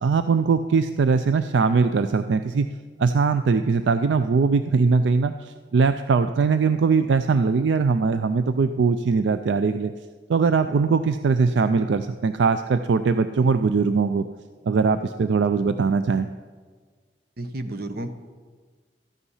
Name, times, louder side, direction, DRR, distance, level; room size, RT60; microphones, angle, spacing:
voice 1, 0.0-2.7 3.0-9.9 10.3-14.2 14.6-16.3, right 4 dB, 75° right, 10 dB, 0.4 m, -21 dB
voice 2, 17.4-18.1, right 1 dB, 55° right, 8 dB, 0.9 m, -31 dB
13.5 x 9.9 x 5.5 m, 1.5 s
head